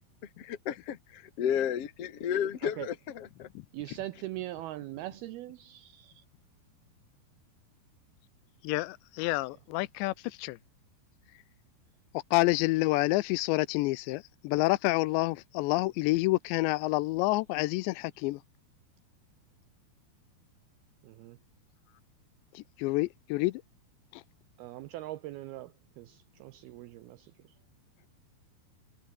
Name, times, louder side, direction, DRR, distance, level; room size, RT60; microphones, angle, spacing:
voice 1, 0.4-3.5, left 9 dB, 40° left, 2.5 m, -32 dB
voice 2, 3.7-6.2 13.3-13.4 21.0-21.4 24.6-27.5, right 16 dB, 80° right, 2.4 m, -41 dB
voice 3, 8.6-10.1 10.4-10.6 12.3-18.4 22.6-23.6, left 20 dB, 80° left, 2.8 m, -28 dB
omnidirectional pair, 5.2 m